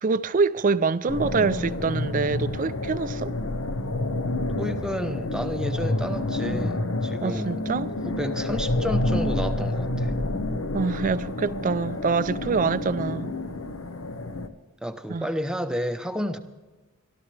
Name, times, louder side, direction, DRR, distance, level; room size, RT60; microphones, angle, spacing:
voice 1, 0.0-3.3 7.2-7.9 10.7-13.3 15.1-15.3, right 4 dB, 35° right, 0.4 m, -25 dB
sound 1, 1.1-14.5, left 2 dB, 65° left, 0.9 m, -28 dB
voice 2, 4.6-7.6 8.0-10.2 14.8-16.4, equal, 5° right, 0.7 m, -31 dB
23.0 x 13.0 x 3.3 m
head